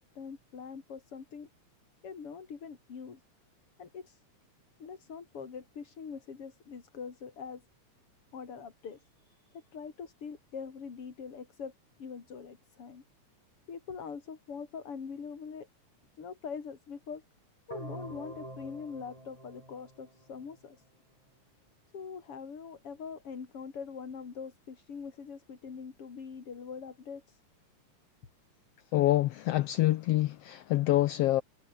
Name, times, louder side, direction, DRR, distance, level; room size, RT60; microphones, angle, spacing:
voice 1, 0.0-1.5 2.0-3.2 3.8-4.2 4.8-7.6 8.3-11.7 12.0-13.0 13.7-15.7 16.2-17.2 17.7-20.8 21.9-27.4, left 6 dB, 50° left, 3.8 m, -43 dB
sound 1, 17.7-20.7, right 1 dB, 10° right, 4.9 m, -46 dB
voice 2, 28.9-31.4, left 15 dB, 80° left, 1.4 m, -26 dB
omnidirectional pair, 3.4 m